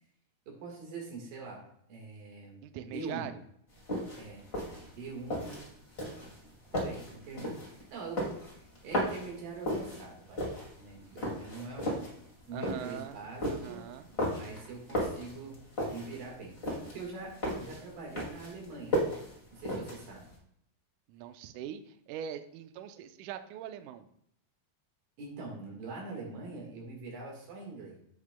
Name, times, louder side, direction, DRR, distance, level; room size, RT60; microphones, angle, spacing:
voice 1, 0.5-1.6 1.9-3.3 4.2-5.5 6.1-6.3 6.7-10.5 10.8-12.0 12.5-13.8 14.1-15.6 15.9-19.2 19.5-20.3 25.2-28.0, right 3 dB, 70° right, 0 dB, 3.2 m, -44 dB
voice 2, 2.6-3.3 12.5-13.2 13.4-14.1 21.1-24.1, right 10 dB, 85° right, 9 dB, 1.7 m, -42 dB
sound 1, 3.7-20.3, equal, 20° left, 1.6 m, -36 dB
9.8 x 8.5 x 2.2 m, 0.71 s
omnidirectional pair, 4.2 m